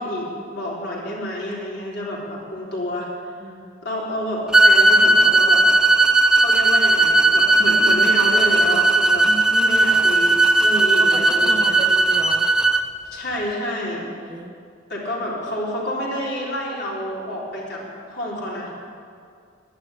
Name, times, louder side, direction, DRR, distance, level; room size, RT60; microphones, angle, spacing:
voice 1, 0.0-3.1 3.8-5.6 6.3-9.3 9.6-11.8 13.0-14.3 14.9-18.7, left 1 dB, 60° left, -5 dB, 4.0 m, -29 dB
voice 2, 3.4-3.8 9.2-9.9 10.7-12.5 14.3-14.5, right 1 dB, 25° right, 3 dB, 1.1 m, -34 dB
sound 1, 4.5-12.8, right 2 dB, 5° right, 0.5 m, -16 dB
11.0 x 10.5 x 9.2 m, 2.3 s
head